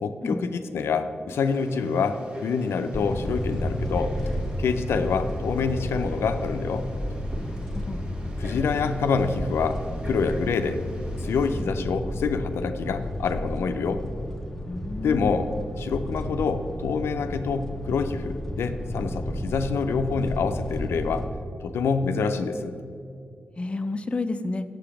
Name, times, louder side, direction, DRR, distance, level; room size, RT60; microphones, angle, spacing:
voice 1, 0.0-4.1 4.6-6.9 8.4-9.8 10.1-10.8 11.2-14.0 15.0-15.5 15.8-21.3 21.6-22.7, left 5 dB, 85° left, 8 dB, 0.4 m, -26 dB
Frog, 1.3-11.6, equal, 25° right, 1.4 m, -43 dB
sound 1, 2.9-21.3, equal, 10° left, 0.9 m, -32 dB
voice 2, 7.4-8.0 11.6-11.7 14.7-15.3 23.6-24.6, left 3 dB, 30° left, 9 dB, 0.4 m, -31 dB
7.7 x 5.1 x 5.8 m, 2.4 s
cardioid pair, 60°, 4 cm